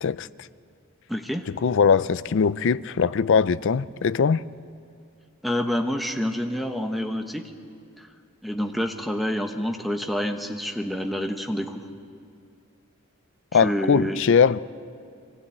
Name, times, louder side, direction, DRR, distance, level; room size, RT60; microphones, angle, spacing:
voice 1, 1.1-1.4 5.4-7.4 8.0-8.1 8.4-11.8 13.5-14.2, equal, ahead, 1.1 m, -27 dB
voice 2, 1.6-4.4 13.5-14.6, left 6 dB, 60° left, 0.4 m, -21 dB
23.0 x 16.0 x 8.5 m
head